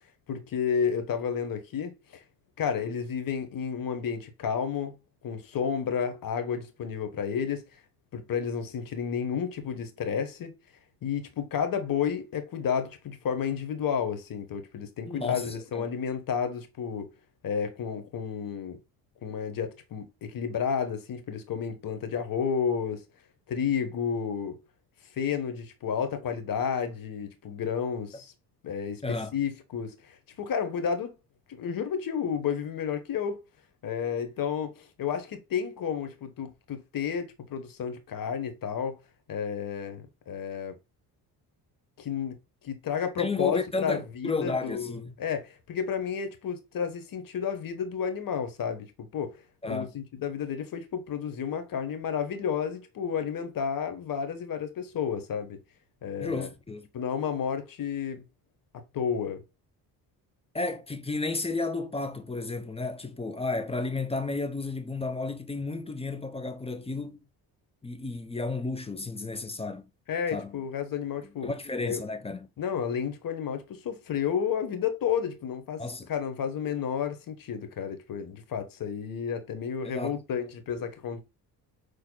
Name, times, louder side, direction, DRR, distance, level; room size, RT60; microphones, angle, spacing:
voice 1, 0.3-2.2 2.6-4.9 5.2-7.7 8.1-10.5 11.0-17.1 17.4-18.8 19.2-23.0 23.5-24.6 25.1-28.3 28.6-31.2 31.6-33.4 33.8-39.0 39.3-40.7 42.0-42.4 42.6-49.3 49.6-55.6 56.0-56.5 56.9-58.2 58.9-59.4 70.1-71.5 71.8-72.0 72.6-75.8 76.1-81.2, left 7 dB, 55° left, 1.2 m, -31 dB
voice 2, 15.1-15.5 15.7-15.9 29.0-29.3 43.2-45.1 49.6-49.9 56.2-56.9 60.5-67.2 67.8-69.9 70.3-70.6 71.4-72.5 75.8-76.1 79.8-80.2, left 3 dB, 15° left, 0.7 m, -32 dB
6.3 x 3.3 x 2.2 m
cardioid pair, 80°, 41 cm